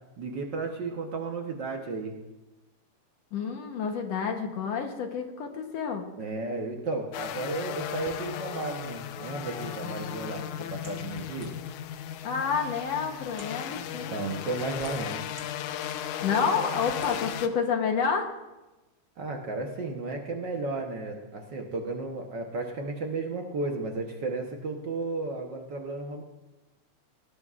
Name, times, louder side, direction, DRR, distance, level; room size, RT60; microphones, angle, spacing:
voice 1, 0.2-2.1 6.2-11.5 13.9-15.3 19.2-26.2, right 3 dB, 60° right, 2 dB, 1.2 m, -33 dB
voice 2, 3.3-6.0 12.2-14.3 16.2-18.3, left 6 dB, 65° left, 4 dB, 2.1 m, -29 dB
sound 1, 7.1-17.5, left 10 dB, 85° left, 2.2 m, -36 dB
sound 2, 10.8-11.8 12.6-12.7 13.3-13.6 14.4-15.5 16.0-16.1 16.8-17.1, right 1 dB, 20° right, 3.2 m, -50 dB
19.0 x 18.5 x 2.5 m, 1.1 s
omnidirectional pair, 3.4 m